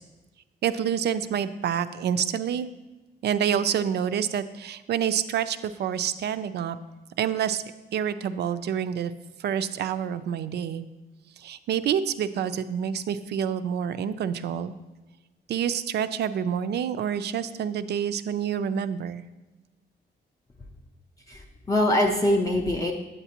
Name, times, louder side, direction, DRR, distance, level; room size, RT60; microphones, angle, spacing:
voice 1, 0.6-2.7 3.2-6.8 7.2-7.6 7.9-9.1 9.4-10.8 11.4-14.7 15.5-19.2, right 8 dB, 65° right, 12 dB, 0.4 m, -27 dB
voice 2, 21.3-22.9, left 1 dB, 20° left, 0 dB, 0.4 m, -23 dB
8.3 x 8.0 x 2.9 m, 1.1 s
wide cardioid pair, 165°, 18 cm